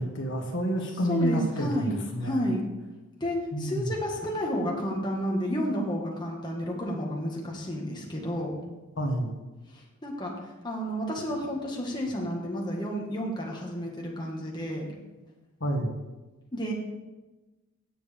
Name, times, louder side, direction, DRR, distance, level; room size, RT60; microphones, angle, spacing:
voice 1, 0.0-2.5 3.5-3.9 9.0-9.3 15.6-15.9, right 1 dB, 55° left, 2 dB, 1.6 m, -29 dB
voice 2, 1.1-2.6 3.2-8.6 9.7-10.3 10.6-14.9 16.5-16.7, equal, 20° left, -2 dB, 1.6 m, -31 dB
17.0 x 7.2 x 3.5 m, 1.1 s
head